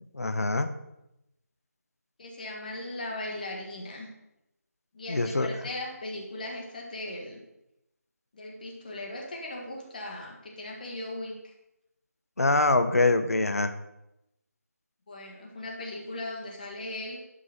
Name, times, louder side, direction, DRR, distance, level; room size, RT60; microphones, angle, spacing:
voice 1, 0.1-0.7 5.1-5.5 12.4-13.7, left 2 dB, 65° left, 9 dB, 1.1 m, -24 dB
voice 2, 2.2-4.1 4.9-7.4 8.3-11.5 15.1-17.2, left 1 dB, 30° left, 0 dB, 1.7 m, -38 dB
11.0 x 5.4 x 5.8 m, 0.86 s
figure-of-eight pair, 165°, 9 cm